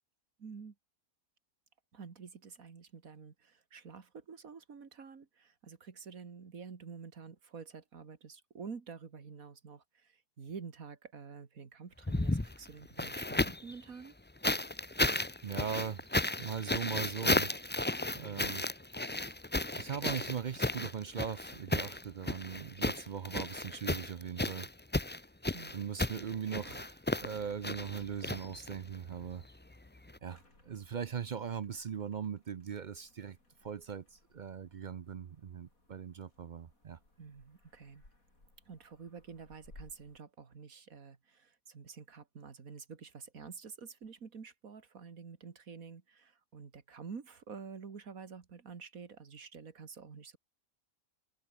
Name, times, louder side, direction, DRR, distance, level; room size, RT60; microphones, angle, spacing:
voice 1, 0.4-0.7 1.9-14.1 18.1-18.5 25.5-25.7 37.2-38.0 38.7-50.4, right 5 dB, 85° right, 2.4 m, -49 dB
sound 1, 12.0-13.7 14.4-29.0 30.1-30.2, left 2 dB, 10° left, 0.6 m, -34 dB
voice 2, 15.4-16.0 16.4-17.5 18.2-18.6 19.8-24.7 25.7-29.4 30.2-30.4 30.7-33.4 33.6-37.0, right 7 dB, 50° right, 0.5 m, -39 dB
sound 2, 27.1-40.2, left 2 dB, 85° left, 7.4 m, -63 dB
omnidirectional pair, 1.4 m